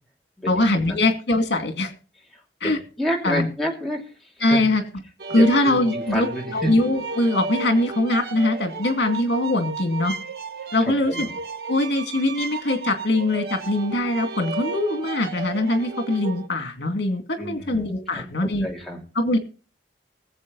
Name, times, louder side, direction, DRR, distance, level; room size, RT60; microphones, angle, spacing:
voice 1, 0.5-1.9 2.6-2.8 3.2-3.5 4.4-4.8 5.3-10.1 10.7-11.3 11.7-18.7 19.1-19.4, left 1 dB, 80° left, 6 dB, 2.3 m, -22 dB
voice 2, 2.6-4.0 4.5-4.6 5.3-6.7 11.1-11.3 17.4-17.9 18.1-18.2 18.6-19.0, equal, ahead, -3 dB, 2.9 m, -29 dB
sound 1, 5.2-16.5, right 4 dB, 65° right, 1.0 m, -33 dB
20.5 x 7.7 x 4.0 m, 0.35 s
head